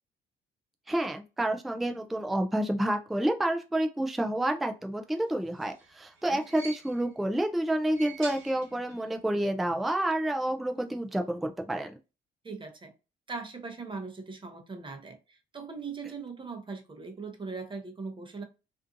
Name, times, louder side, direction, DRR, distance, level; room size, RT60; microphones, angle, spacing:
voice 1, 0.9-11.9, right 1 dB, ahead, 5 dB, 0.4 m, -29 dB
sound 1, 5.3-7.2 7.7-9.1 9.4-9.5 10.6-10.7, right 4 dB, 85° right, 0.9 m, -47 dB
voice 2, 12.4-12.9 13.3-18.4, right 4 dB, 25° right, 5 dB, 0.8 m, -40 dB
2.6 x 2.4 x 2.5 m, 0.29 s
cardioid pair, 90°, 20 cm